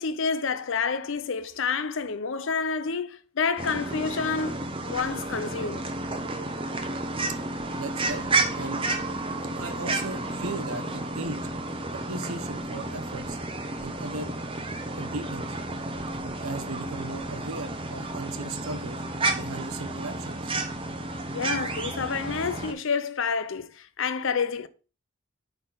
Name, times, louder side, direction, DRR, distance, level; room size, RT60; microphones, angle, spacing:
voice 1, 0.0-5.8 21.3-24.7, left 5 dB, 55° left, 0.6 m, -29 dB
sound 1, 3.6-22.7, right 2 dB, 25° right, 0.8 m, -31 dB
voice 2, 7.8-8.8 9.6-11.4 11.9-13.4 13.8-14.3 15.0-15.6 16.2-19.0 19.3-20.5, right 2 dB, 75° right, 1.0 m, -37 dB
8.9 x 4.1 x 3.9 m
head